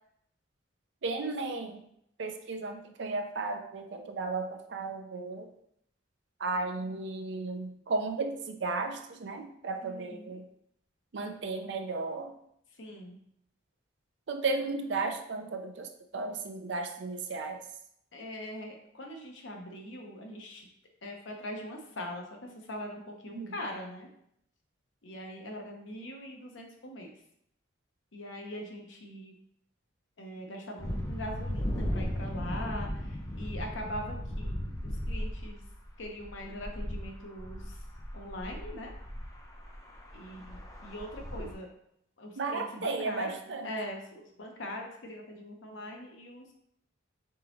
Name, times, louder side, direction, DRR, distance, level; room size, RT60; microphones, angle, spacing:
voice 1, 1.0-1.8 2.2-5.5 6.4-10.4 11.1-12.3 14.3-17.6 23.3-23.5 42.4-43.7, right 3 dB, 65° right, 5 dB, 0.5 m, -34 dB
voice 2, 9.8-10.4 12.8-13.2 18.1-20.7 21.0-24.1 25.0-27.1 28.1-29.4 30.2-34.7 35.1-35.6 36.0-37.8 38.1-38.9 40.1-41.7 42.2-43.4 43.6-46.6, left 1 dB, 80° left, 1 dB, 0.8 m, -42 dB
sound 1, 30.8-41.5, equal, 15° left, 0.5 m, -37 dB
3.8 x 3.6 x 3.0 m, 0.73 s
head